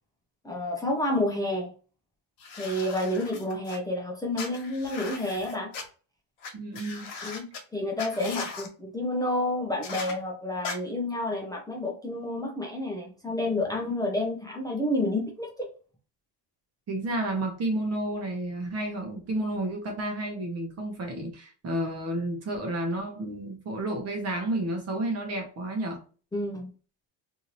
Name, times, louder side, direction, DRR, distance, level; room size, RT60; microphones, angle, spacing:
voice 1, 0.4-1.7 2.6-5.7 7.2-7.4 7.7-15.7 26.3-26.7, left 1 dB, 10° left, -1 dB, 0.5 m, -29 dB
sound 1, 2.4-3.8 4.3-5.8 6.4-6.5 6.7-7.6 8.0-8.7 9.8-10.1 10.6-10.7, left 4 dB, 75° left, 1.4 m, -38 dB
voice 2, 6.5-7.1 8.2-8.3 16.9-26.0, right 1 dB, 35° right, 3 dB, 0.9 m, -31 dB
2.8 x 2.7 x 3.0 m, 0.37 s
cardioid pair, 150°, 45 cm